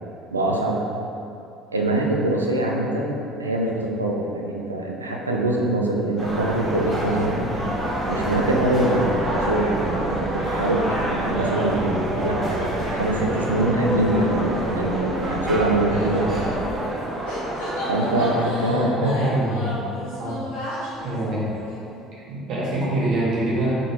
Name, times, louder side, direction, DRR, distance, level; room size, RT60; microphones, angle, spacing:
voice 1, 0.3-0.8 1.7-7.4 8.1-16.4 17.9-19.2, right 1 dB, 90° right, -1 dB, 0.3 m, -24 dB
sound 1, 6.2-16.6, equal, 30° left, 0.6 m, -32 dB
sound 2, 6.2-18.4, right 1 dB, 25° right, 1.1 m, -28 dB
sound 3, 15.9-17.0 17.3-22.0, left 1 dB, 70° left, 1.0 m, -34 dB
voice 2, 18.7-19.8 20.2-20.4 21.0-21.4 22.3-23.8, right 1 dB, 55° right, -8 dB, 1.2 m, -24 dB
3.8 x 3.6 x 2.8 m, 2.7 s
figure-of-eight pair, 55°, 0 cm